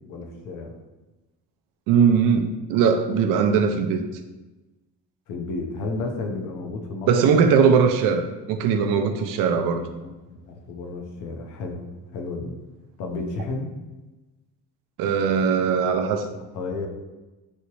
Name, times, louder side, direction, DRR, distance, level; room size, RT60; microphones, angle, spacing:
voice 1, 0.1-0.7 5.3-7.2 9.7-11.8 12.1-12.5 13.0-13.7 16.2-16.9, left 3 dB, 65° left, 3 dB, 0.7 m, -32 dB
voice 2, 1.9-4.0 7.1-9.8 15.0-16.2, right 6 dB, 75° right, 6 dB, 0.5 m, -20 dB
3.2 x 2.8 x 2.9 m, 1.1 s
cardioid pair, 125°, 33 cm